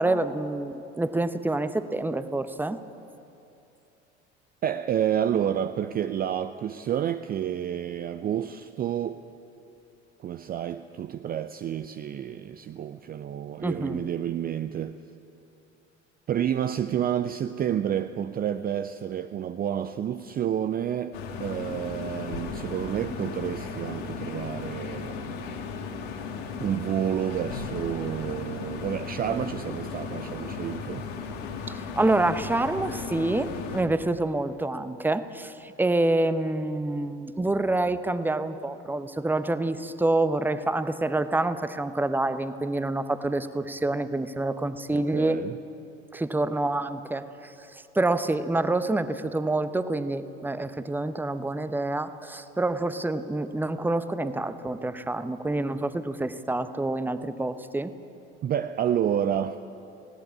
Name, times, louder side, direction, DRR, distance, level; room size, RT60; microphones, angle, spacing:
voice 1, 0.0-2.8 13.6-14.0 31.7-45.4 46.1-57.9, right 2 dB, 5° right, 0.9 m, -27 dB
voice 2, 4.6-9.2 10.2-15.0 16.3-25.4 26.6-31.0 44.9-45.6 58.4-59.6, right 10 dB, 25° right, 0.6 m, -29 dB
sound 1, 21.1-33.8, left 5 dB, 60° left, 2.3 m, -36 dB
19.5 x 17.5 x 8.5 m
figure-of-eight pair, 60°, 34 cm